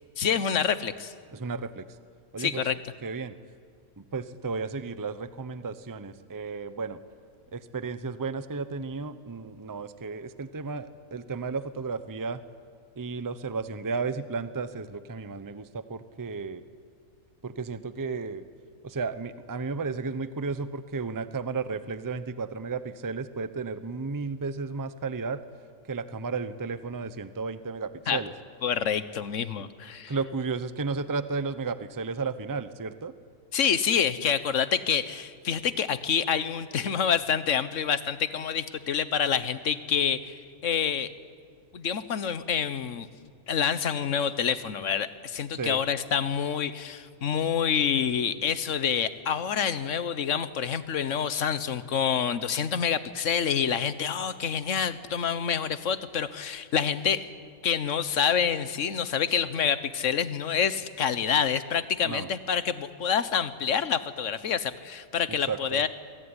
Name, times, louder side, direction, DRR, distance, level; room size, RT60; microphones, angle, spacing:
voice 1, 0.2-1.1 2.4-2.8 28.1-28.2 28.6-30.1 33.5-41.1 41.7-43.1 43.5-57.3 57.6-65.9, left 7 dB, 60° left, 13 dB, 1.3 m, -27 dB
voice 2, 1.3-1.9 2.3-2.6 3.0-3.4 4.0-7.0 7.5-12.4 13.0-16.6 17.4-18.5 18.8-25.4 25.9-28.3 30.1-33.1 45.5-45.8 62.0-62.3 65.3-65.8, right 4 dB, 20° right, 13 dB, 0.6 m, -33 dB
23.5 x 22.5 x 9.8 m, 2.1 s
omnidirectional pair, 1.6 m